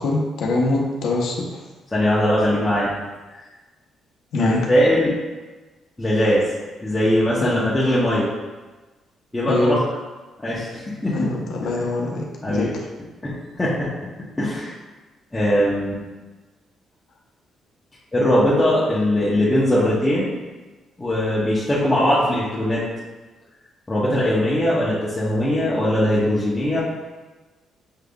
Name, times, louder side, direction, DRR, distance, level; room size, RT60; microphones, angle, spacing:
voice 1, 0.0-1.6 4.3-4.6 7.4-7.6 9.5-9.8 11.1-12.7, left 2 dB, 75° left, -1 dB, 0.8 m, -23 dB
voice 2, 1.9-2.9 4.4-5.1 6.0-6.5 6.8-8.3 9.3-9.8 10.4-11.3 11.8-11.9 12.4-12.8 13.2-13.9 14.4-14.7 15.3-16.0 18.1-20.4 21.0-22.8 23.9-26.8, equal, 15° left, -9 dB, 1.1 m, -20 dB
6.5 x 3.5 x 2.3 m, 1.2 s
cardioid pair, 90°, 0 cm